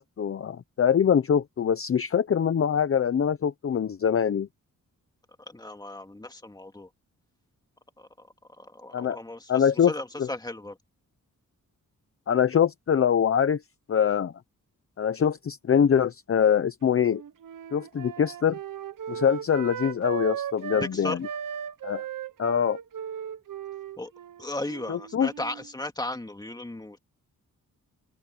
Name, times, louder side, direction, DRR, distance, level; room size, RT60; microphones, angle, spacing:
voice 1, 0.0-4.5 8.9-9.2 9.5-9.9 10.2-10.3 12.3-13.6 13.9-14.3 15.0-17.2 17.7-18.6 19.1-21.3 21.8-22.0 22.4-22.8 24.9-25.3, left 8 dB, 45° left, 0.7 m, -24 dB
voice 2, 5.5-6.9 8.0-8.3 8.6-10.8 20.8-21.2 24.0-24.1 24.4-27.0, left 2 dB, 10° left, 2.1 m, -36 dB
Wind instrument woodwind instrument, 16.9-20.9 21.2-25.7, right 9 dB, 80° right, 1.0 m, -37 dB
open air
wide cardioid pair, 145°, 32 cm